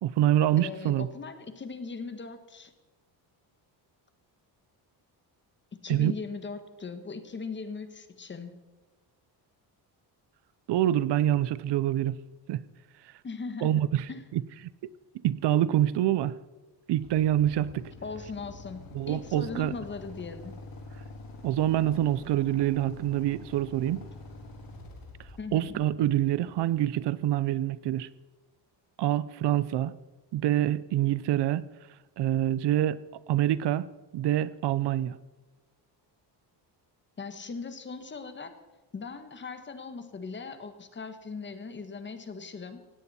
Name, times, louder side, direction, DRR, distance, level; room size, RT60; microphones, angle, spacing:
voice 1, 0.0-1.1 5.9-6.1 10.7-12.2 12.5-12.6 13.6-14.0 14.3-14.4 14.8-14.9 15.2-16.4 16.9-17.9 18.9-19.7 21.4-24.0 25.5-28.1 29.0-29.9 30.3-31.6 32.2-33.0 33.3-33.9 34.1-35.2, right 12 dB, 70° right, 18 dB, 0.7 m, -26 dB
voice 2, 0.6-2.7 5.8-8.6 13.2-13.8 14.1-14.2 18.0-20.6 25.4-25.8 37.2-38.6 38.9-42.8, left 4 dB, 25° left, 9 dB, 1.4 m, -39 dB
Motorcycle / Idling, 17.0-26.9, left 3 dB, 55° left, 4.0 m, -46 dB
18.0 x 17.0 x 4.3 m, 1.2 s
cardioid pair, 165°, 43 cm